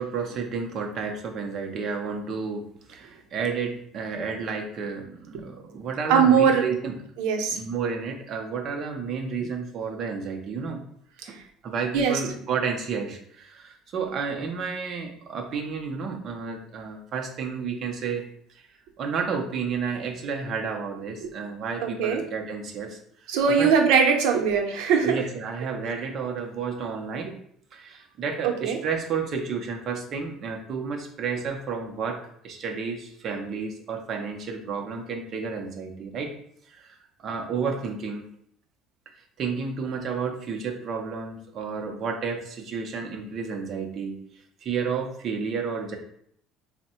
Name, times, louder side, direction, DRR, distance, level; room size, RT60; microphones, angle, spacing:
voice 1, 0.0-6.9 7.5-10.8 11.3-11.4 11.6-18.3 18.5-18.7 19.0-23.7 25.0-27.4 27.7-36.3 36.7-38.3 39.4-46.0, right 5 dB, 35° right, 2 dB, 0.6 m, -31 dB
voice 2, 6.1-6.6 7.2-7.6 11.9-12.2 21.2-21.3 21.8-22.2 23.3-25.2 28.4-28.8, right 6 dB, 75° right, 3 dB, 0.7 m, -21 dB
3.5 x 2.1 x 4.2 m, 0.66 s
cardioid pair, 170°, 0 cm